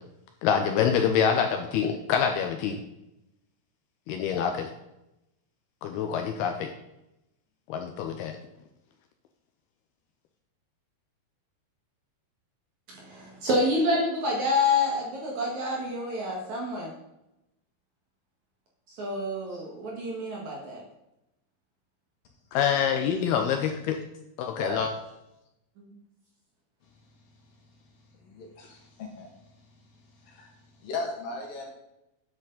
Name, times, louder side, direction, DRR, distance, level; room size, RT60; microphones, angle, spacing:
voice 1, 0.4-2.8 4.1-4.7 5.8-6.7 7.7-8.4 22.5-24.0 24.4-24.9, left 7 dB, 80° left, 5 dB, 2.5 m, -26 dB
voice 2, 12.9-16.9 18.9-20.8 25.8-25.9, left 2 dB, 55° right, -2 dB, 2.4 m, -28 dB
voice 3, 28.3-29.3 30.2-30.5 30.8-31.7, left 3 dB, 60° left, 1 dB, 3.4 m, -36 dB
10.5 x 8.9 x 4.0 m, 0.89 s
omnidirectional pair, 5.0 m